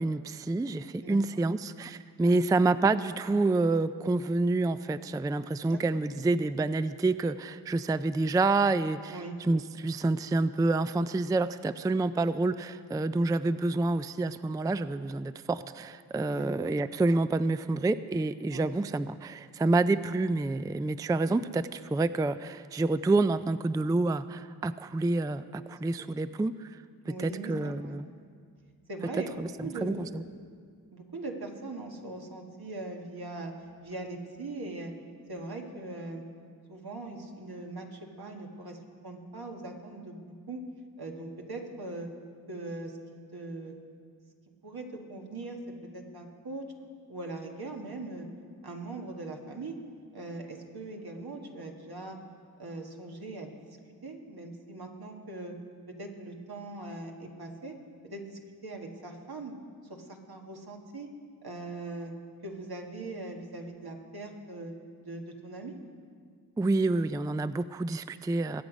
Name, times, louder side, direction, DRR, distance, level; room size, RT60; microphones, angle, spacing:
voice 1, 0.0-26.8 27.2-28.1 29.4-29.5 29.8-30.2 66.6-68.6, right 2 dB, 10° right, 13 dB, 0.3 m, -28 dB
voice 2, 5.7-6.0 9.1-9.3 16.3-16.7 18.5-18.7 25.6-26.3 27.0-28.0 28.9-30.3 30.9-33.5 33.8-34.9 35.3-36.2 36.7-40.6 41.0-42.1 42.5-43.8 44.6-45.6 45.9-46.7 47.1-48.2 48.6-49.8 50.1-52.2 52.6-53.8 54.0-55.5 56.0-57.7 58.0-59.5 59.9-61.1 61.4-62.1 62.4-64.7 65.0-65.7, right 2 dB, 70° right, 1 dB, 1.7 m, -41 dB
21.5 x 8.3 x 5.2 m, 2.1 s
cardioid pair, 40°, 38 cm